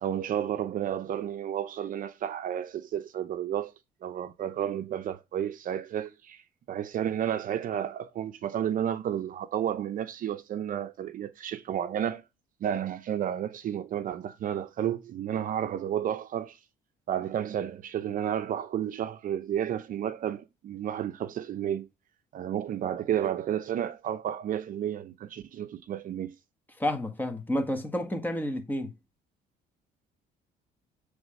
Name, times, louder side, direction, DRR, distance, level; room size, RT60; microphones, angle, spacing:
voice 1, 0.0-3.7 4.0-6.4 6.7-12.2 12.6-16.6 17.1-21.9 22.3-26.3, right 10 dB, 55° right, 0.7 m, -31 dB
voice 2, 26.8-28.9, left 1 dB, 10° left, 1.7 m, -30 dB
7.9 x 3.4 x 5.1 m
cardioid pair, 110°, 17 cm